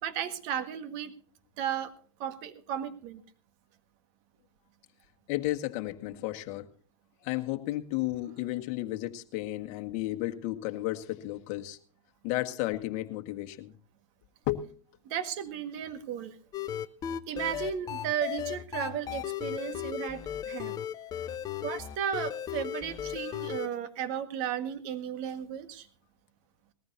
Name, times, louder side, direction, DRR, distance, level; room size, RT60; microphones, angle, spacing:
voice 1, 0.0-1.1 1.6-1.9 2.2-3.2 15.1-16.3 17.3-20.7 21.6-25.9, right 9 dB, 45° right, 9 dB, 1.6 m, -34 dB
voice 2, 5.3-6.7 7.2-11.8 12.2-13.7 14.5-14.7, left 16 dB, 40° left, 6 dB, 1.6 m, -33 dB
sound 1, 16.5-23.7, left 10 dB, 25° left, 0.7 m, -36 dB
20.0 x 14.5 x 2.7 m, 0.43 s
hypercardioid pair, 130°, 16 cm